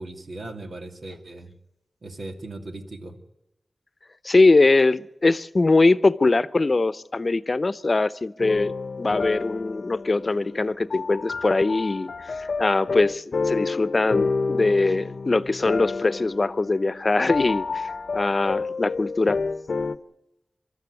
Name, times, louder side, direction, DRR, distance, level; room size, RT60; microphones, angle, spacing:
voice 1, 0.0-1.5 2.0-3.2, right 2 dB, 80° right, 2.6 m, -38 dB
voice 2, 4.2-19.4, left 3 dB, 55° left, 0.7 m, -22 dB
sound 1, 8.4-20.0, left 4 dB, 85° left, 0.8 m, -29 dB
23.5 x 13.0 x 9.6 m
cardioid pair, 45°, 0 cm